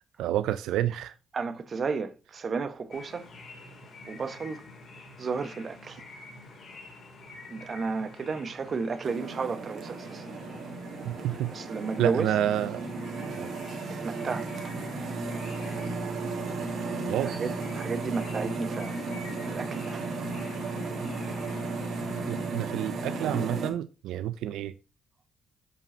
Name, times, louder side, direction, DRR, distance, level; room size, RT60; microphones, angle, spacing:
voice 1, 0.2-1.1 11.0-11.5 12.0-12.9 13.4-13.5 17.1-17.3 22.3-24.7, right 12 dB, 90° right, 0.4 m, -29 dB
voice 2, 1.3-3.3 4.1-4.6 5.2-6.0 7.5-10.2 11.5-12.3 13.9-14.7 17.2-19.0 19.4-20.0, right 4 dB, 45° right, 0.9 m, -33 dB
sound 1, 2.9-22.5, left 2 dB, 55° left, 2.4 m, -48 dB
sound 2, 9.0-23.7, right 3 dB, 60° right, 2.0 m, -34 dB
7.6 x 5.4 x 4.2 m
cardioid pair, 85°, 0 cm